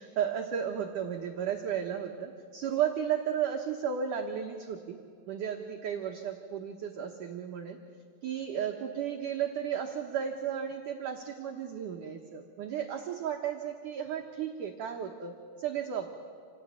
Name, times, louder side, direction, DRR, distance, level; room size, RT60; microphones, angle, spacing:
voice 1, 0.0-5.0 5.3-7.8 8.2-16.1, right 8 dB, 70° right, 2 dB, 2.0 m, -34 dB
27.5 x 17.5 x 9.6 m, 2.2 s
omnidirectional pair, 5.2 m